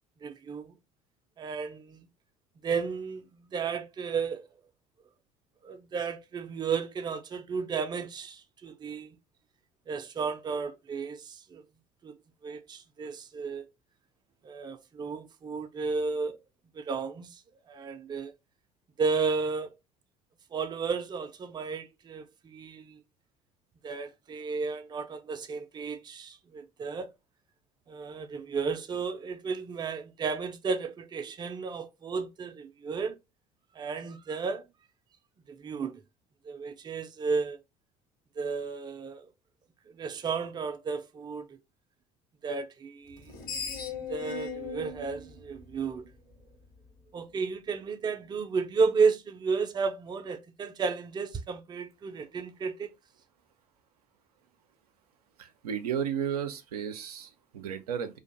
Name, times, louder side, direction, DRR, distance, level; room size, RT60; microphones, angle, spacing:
voice 1, 0.2-0.8 1.4-2.1 2.6-4.5 5.6-9.2 9.9-11.6 12.0-12.2 12.4-13.7 14.4-16.4 16.7-17.4 17.7-18.3 19.0-19.7 20.5-23.0 23.8-27.1 27.9-33.2 33.8-34.6 35.5-36.0 36.4-37.6 38.4-39.3 39.9-41.5 42.4-43.2 44.1-46.1 47.1-52.9, right 5 dB, 25° right, 0.4 m, -33 dB
Screech, 43.1-46.4, left 5 dB, 50° left, 1.0 m, -38 dB
voice 2, 55.4-58.2, right 8 dB, 85° right, 0.4 m, -33 dB
2.5 x 2.2 x 2.5 m
hypercardioid pair, 65°, 19 cm